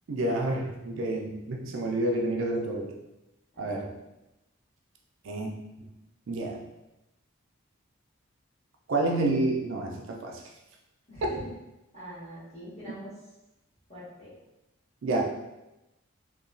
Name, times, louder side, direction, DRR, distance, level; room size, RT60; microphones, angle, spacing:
voice 1, 0.1-2.9 3.6-3.9 5.2-5.5 5.8-5.9 6.3-6.6 8.9-10.4 15.0-15.2, right 2 dB, 70° right, 0 dB, 0.4 m, -29 dB
voice 2, 11.1-11.6 11.9-13.1 13.9-14.4, equal, 30° left, -11 dB, 1.4 m, -43 dB
2.9 x 2.2 x 2.5 m, 0.95 s
head